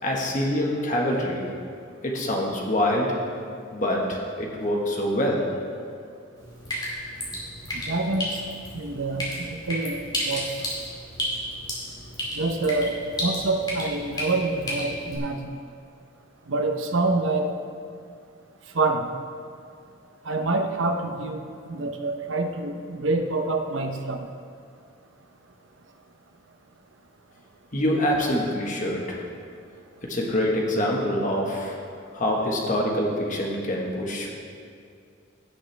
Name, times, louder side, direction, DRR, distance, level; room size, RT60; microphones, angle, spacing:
voice 1, 0.0-1.4 2.0-3.2 3.7-5.7 27.7-29.2 30.0-31.8 32.1-34.4, left 1 dB, 40° left, -1 dB, 1.4 m, -25 dB
Drip, 6.4-15.2, equal, 20° left, 2.3 m, -33 dB
voice 2, 7.7-8.3 8.7-10.0 10.3-10.5 12.4-12.9 13.2-15.4 16.5-17.5 18.7-19.1 20.3-21.4 21.7-24.3, right 3 dB, 70° right, 4 dB, 0.8 m, -26 dB
16.5 x 6.2 x 3.3 m, 2.4 s
head